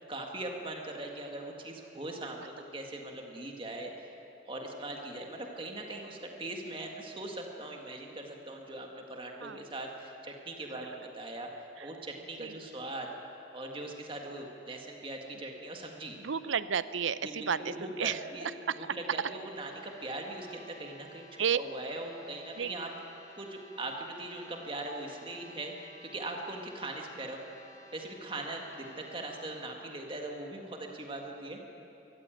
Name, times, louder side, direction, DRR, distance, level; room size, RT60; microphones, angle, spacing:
voice 1, 0.1-4.2 4.5-13.1 13.5-16.2 17.2-18.5 18.8-21.3 21.5-22.9 23.3-27.4 27.9-31.6, right 2 dB, 25° right, 2 dB, 1.8 m, -40 dB
voice 2, 16.2-18.2 18.7-18.8 21.4-21.6 22.6-22.7, right 7 dB, 85° right, 15 dB, 0.6 m, -32 dB
sound 1, 19.5-29.6, equal, 20° left, 3.6 m, -56 dB
23.5 x 14.0 x 9.2 m, 2.9 s
head